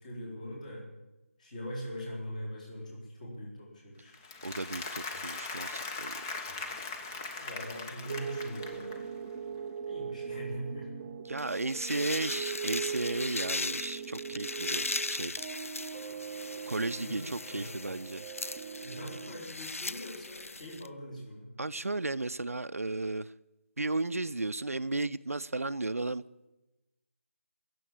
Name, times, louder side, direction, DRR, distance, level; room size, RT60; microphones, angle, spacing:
voice 1, 0.0-0.9 1.4-4.2 7.4-9.0 9.9-11.1 17.0-17.9 18.8-21.5, equal, 35° left, 4.2 m, -42 dB
Applause, 4.1-9.2, left 4 dB, 15° left, 0.8 m, -40 dB
voice 2, 4.4-6.1 11.3-15.4 16.7-18.3 21.6-23.3 23.8-26.2, right 2 dB, 85° right, 0.5 m, -34 dB
sound 1, 8.1-19.4, right 6 dB, 15° right, 0.5 m, -40 dB
sound 2, 11.4-20.9, left 3 dB, 75° left, 0.6 m, -38 dB
15.5 x 7.8 x 10.0 m
figure-of-eight pair, 160°, 8 cm